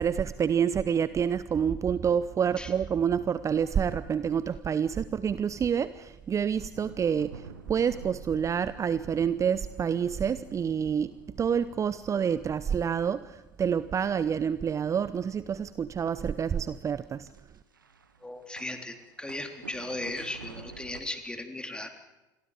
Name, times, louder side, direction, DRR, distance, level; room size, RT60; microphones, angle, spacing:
voice 1, 0.0-17.3, right 7 dB, 30° right, 16 dB, 0.8 m, -28 dB
sound 1, 6.5-13.4 13.8-14.4 14.8-21.0, right 5 dB, 80° right, 1.6 m, -50 dB
voice 2, 18.2-21.9, left 2 dB, 10° left, 6 dB, 3.6 m, -37 dB
28.5 x 23.0 x 5.1 m, 1.0 s
figure-of-eight pair, 65°, 11 cm